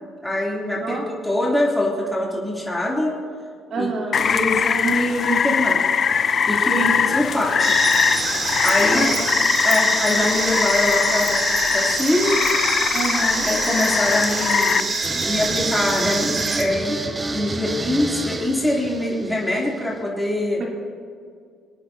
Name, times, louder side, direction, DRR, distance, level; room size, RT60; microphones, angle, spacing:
voice 1, 0.2-3.1 3.8-3.9 4.2-5.8 6.5-7.7 8.6-9.1 9.6-11.4 11.7-12.4 13.4-14.9 15.2-17.0 17.3-20.6, left 1 dB, 5° left, -5 dB, 3.1 m, -23 dB
voice 2, 3.7-4.2 6.7-7.0 8.9-9.2 12.9-13.5 20.6-20.7, right 3 dB, 55° right, -2 dB, 3.4 m, -28 dB
Rain, 4.1-14.8, left 6 dB, 45° left, 0.5 m, -21 dB
sound 1, 7.6-16.6, right 3 dB, 35° right, 1.6 m, -25 dB
sound 2, 15.0-20.0, right 2 dB, 20° right, 0.9 m, -30 dB
24.5 x 9.1 x 2.8 m, 2.2 s
supercardioid pair, 90°, 0 cm